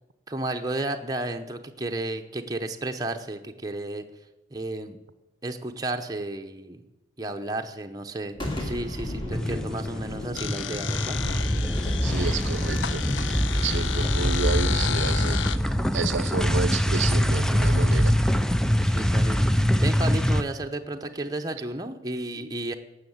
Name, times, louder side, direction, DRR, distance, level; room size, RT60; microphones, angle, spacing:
voice 1, 0.3-4.0 4.5-5.0 5.4-6.8 7.2-11.2 18.8-22.7, right 2 dB, 20° right, 4 dB, 0.8 m, -33 dB
Boom, 8.3-17.9, left 1 dB, 25° left, 2.4 m, -37 dB
sound 1, 9.3-10.1 10.3-20.4, equal, 5° left, 0.4 m, -24 dB
sound 2, 10.4-15.6, left 8 dB, 75° left, 0.5 m, -32 dB
voice 2, 12.0-13.1 13.6-15.4 15.9-18.1, right 5 dB, 80° right, 14 dB, 0.7 m, -30 dB
17.0 x 6.4 x 7.9 m, 1.0 s
head